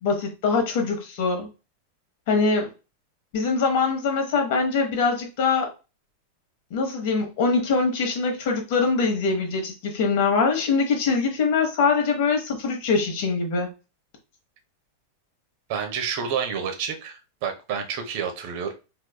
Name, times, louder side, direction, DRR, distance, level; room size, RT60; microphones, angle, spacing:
voice 1, 0.0-1.5 2.3-2.7 3.3-5.7 6.7-13.7, left 4 dB, 50° left, 3 dB, 1.2 m, -23 dB
voice 2, 15.7-18.7, right 7 dB, 45° right, 4 dB, 0.8 m, -29 dB
4.6 x 3.0 x 2.2 m, 0.30 s
figure-of-eight pair, 90°, 0 cm